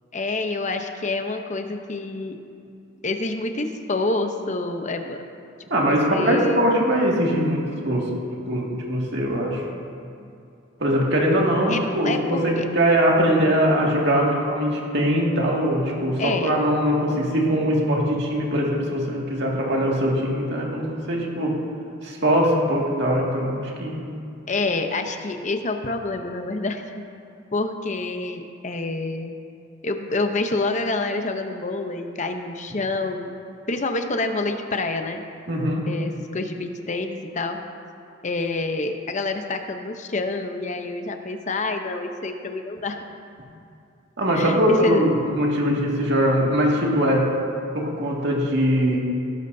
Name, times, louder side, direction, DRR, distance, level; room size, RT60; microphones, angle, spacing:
voice 1, 0.1-2.4 3.0-5.3 5.7-6.7 11.7-12.6 16.2-16.6 24.5-27.0 27.5-29.3 29.8-33.3 33.7-35.2 35.9-37.6 38.2-43.0 44.3-45.0, left 2 dB, 35° left, 6 dB, 0.8 m, -27 dB
voice 2, 5.7-8.1 8.5-9.6 10.8-21.6 22.0-24.1 35.5-35.9 44.2-47.3 47.7-49.0, equal, 60° right, -2 dB, 2.1 m, -21 dB
18.0 x 12.0 x 2.7 m, 2.5 s
head